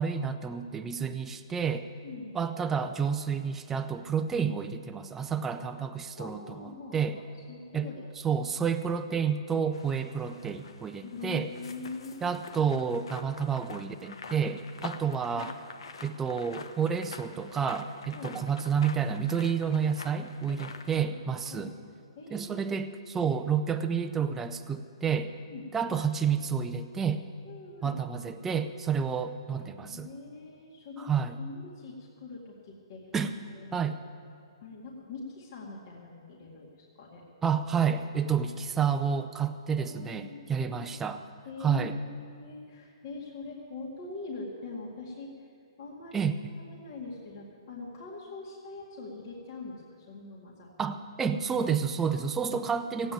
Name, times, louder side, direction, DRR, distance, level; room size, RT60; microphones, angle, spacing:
voice 1, 0.0-1.8 2.3-7.2 7.7-7.9 8.2-11.5 12.2-15.5 16.0-21.7 22.3-25.3 25.7-27.2 27.8-30.1 31.0-31.4 33.1-33.3 33.7-33.9 37.4-41.2 41.6-42.0 46.1-46.3 50.8-53.1, right 6 dB, 10° right, 7 dB, 0.5 m, -30 dB
voice 2, 2.0-2.4 6.2-7.2 7.5-8.0 11.0-12.2 15.3-15.5 18.1-18.3 20.5-20.6 21.0-22.8 25.5-25.7 27.4-28.0 29.6-31.1 31.4-33.0 33.5-33.9 34.6-37.2 39.8-40.8 41.4-45.5 45.8-46.2 46.7-50.7, left 3 dB, 45° left, -4 dB, 2.2 m, -43 dB
sound 1, 9.7-21.1, left 5 dB, 75° left, 1.1 m, -46 dB
16.0 x 8.7 x 9.0 m, 2.4 s
hypercardioid pair, 160°, 3 cm